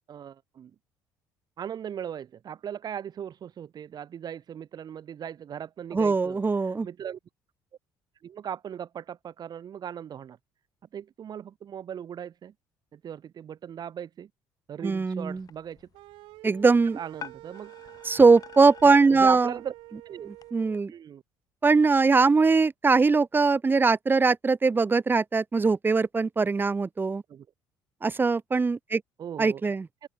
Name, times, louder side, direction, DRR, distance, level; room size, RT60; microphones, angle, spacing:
voice 1, 0.1-0.7 1.6-7.2 8.2-10.4 10.9-12.5 12.9-14.3 14.7-15.9 17.0-17.7 18.9-19.7 20.1-20.3 20.9-21.2 27.3-27.5 29.2-29.7 30.0-30.1, right 9 dB, 50° right, 2.6 m, -38 dB
voice 2, 5.9-6.9 14.8-15.5 16.4-17.0 18.0-19.5 20.3-20.9 21.6-27.2 28.0-29.0 29.4-29.9, right 4 dB, 25° right, 0.8 m, -21 dB
sound 1, 15.3-20.5, left 7 dB, 45° left, 4.8 m, -49 dB
sound 2, 15.9-20.8, right 19 dB, 80° right, 6.4 m, -48 dB
supercardioid pair, 75°, 9 cm